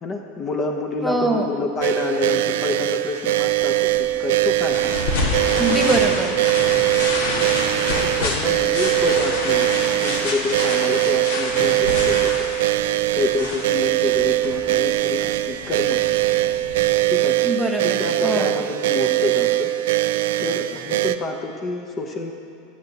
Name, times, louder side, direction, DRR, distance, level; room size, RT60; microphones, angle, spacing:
voice 1, 0.0-4.9 7.8-9.7 10.0-12.3 13.1-16.1 17.1-17.4 17.8-19.7 20.4-22.3, left 3 dB, 35° left, 3 dB, 0.9 m, -28 dB
voice 2, 1.0-1.4 5.5-6.3 17.4-18.5, right 1 dB, 5° right, 1 dB, 1.4 m, -23 dB
sound 1, 1.8-21.2, right 16 dB, 70° right, 0.4 m, -21 dB
sound 2, 3.2-16.9, left 2 dB, 75° left, 1.7 m, -28 dB
18.5 x 7.9 x 2.9 m, 2.5 s
hypercardioid pair, 90°, 0 cm